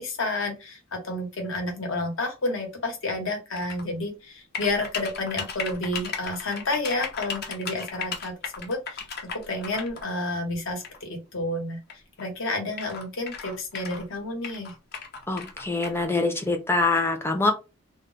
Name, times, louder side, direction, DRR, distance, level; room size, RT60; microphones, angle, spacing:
voice 1, 0.0-9.0 9.3-11.8 12.2-14.7, left 2 dB, 70° left, 3 dB, 1.0 m, -30 dB
sound 1, 3.6-3.8 4.5-10.1 10.8-11.0 11.9-12.0 12.2-12.3 12.7-14.1 14.4-16.0, left 5 dB, 50° left, 0.6 m, -35 dB
voice 2, 15.3-17.5, left 3 dB, 10° left, 4 dB, 0.5 m, -24 dB
2.3 x 2.0 x 3.8 m, 0.28 s
head